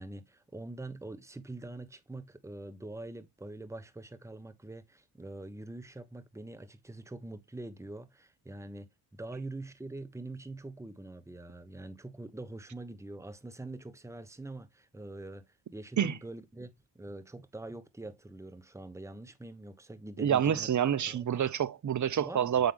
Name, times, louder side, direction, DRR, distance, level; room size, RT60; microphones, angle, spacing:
voice 1, 0.0-8.9 9.1-20.7 21.1-21.5 22.2-22.6, right 2 dB, 5° right, 1.2 m, -44 dB
voice 2, 20.2-22.7, right 9 dB, 45° right, 0.9 m, -28 dB
7.3 x 5.7 x 3.5 m
cardioid pair, 80°, 42 cm